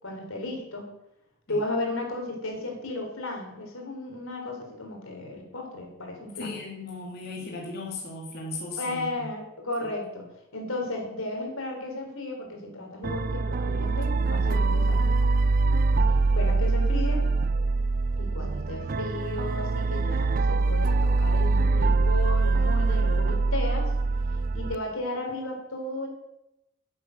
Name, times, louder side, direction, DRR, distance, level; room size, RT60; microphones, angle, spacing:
voice 1, 0.0-0.9 1.5-6.5 8.8-10.3 10.5-15.0 15.9-17.2 18.1-23.9 24.5-26.1, left 2 dB, 90° left, 1 dB, 4.0 m, -34 dB
voice 2, 6.4-9.3, left 2 dB, 50° left, -2 dB, 2.8 m, -36 dB
sound 1, 13.0-24.7, right 3 dB, 45° right, 0.5 m, -24 dB
14.0 x 8.4 x 6.6 m, 0.85 s
head